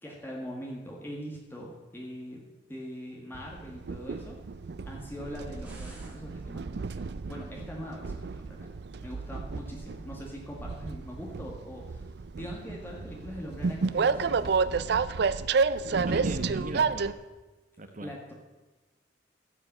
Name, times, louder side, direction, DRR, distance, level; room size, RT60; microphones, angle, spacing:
voice 1, 0.0-4.4 4.9-12.1 12.3-14.9 18.0-18.3, equal, 15° left, -2 dB, 1.8 m, -42 dB
Train, 3.3-17.1, right 5 dB, 65° right, 0.5 m, -31 dB
sound 1, 5.2-6.2, right 1 dB, 5° right, 2.3 m, -52 dB
voice 2, 16.1-17.2 17.8-18.1, right 1 dB, 45° right, 8 dB, 1.1 m, -38 dB
14.5 x 5.6 x 8.6 m, 1.2 s
head